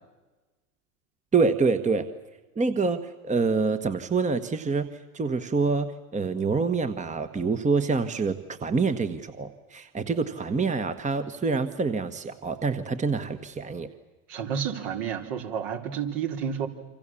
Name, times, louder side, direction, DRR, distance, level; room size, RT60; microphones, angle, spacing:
voice 1, 1.3-2.1 2.6-4.9 5.1-13.9, right 4 dB, 15° right, 10 dB, 1.4 m, -26 dB
voice 2, 14.3-16.7, right 7 dB, 60° right, 4 dB, 3.7 m, -30 dB
28.0 x 25.5 x 7.3 m, 1.2 s
hypercardioid pair, 90°, 44 cm